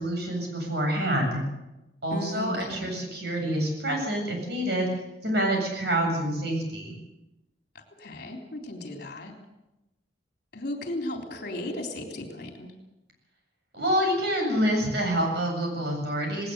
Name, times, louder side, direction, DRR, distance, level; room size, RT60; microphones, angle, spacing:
voice 1, 0.0-1.4 2.0-4.9 5.2-6.9 13.7-16.5, right 1 dB, 65° right, 2 dB, 7.9 m, -27 dB
voice 2, 2.1-3.0 7.7-9.3 10.5-12.7, left 1 dB, 55° left, 3 dB, 3.5 m, -36 dB
19.0 x 18.5 x 8.1 m, 0.96 s
head